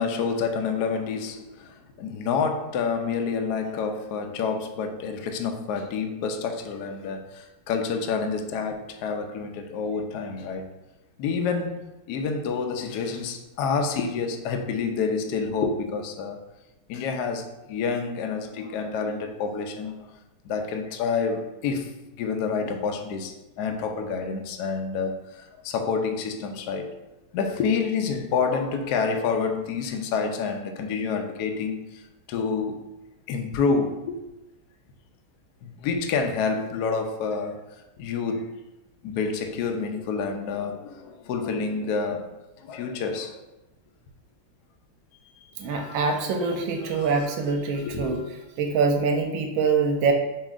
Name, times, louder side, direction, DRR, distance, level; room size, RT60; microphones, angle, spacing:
voice 1, 0.0-10.7 11.2-11.8 12.1-16.4 16.9-20.1 20.4-21.9 22.2-26.9 27.3-32.0 32.3-32.8 33.3-34.2 35.6-37.6 38.0-38.5 39.0-42.3 42.6-43.4 45.6-46.4 46.8-47.4 47.8-48.2, left 5 dB, 85° left, 0.9 m, -28 dB
voice 2, 45.6-48.2 48.6-50.1, right 4 dB, 75° right, 1.3 m, -24 dB
6.7 x 3.1 x 2.4 m
omnidirectional pair, 2.3 m